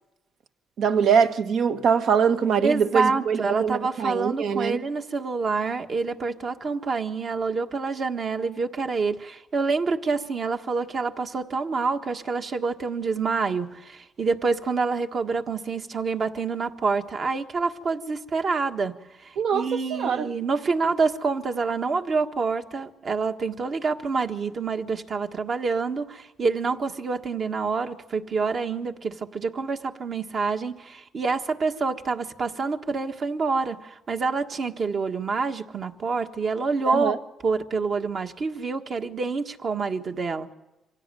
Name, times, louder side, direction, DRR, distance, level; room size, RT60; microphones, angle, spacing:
voice 1, 0.8-4.8 19.4-20.3 36.9-37.2, right 6 dB, 70° right, 1.3 m, -23 dB
voice 2, 2.6-18.9 19.2-37.1 37.4-40.5, right 4 dB, 50° right, 1.6 m, -27 dB
25.5 x 16.5 x 9.1 m
cardioid pair, 90°, 0 cm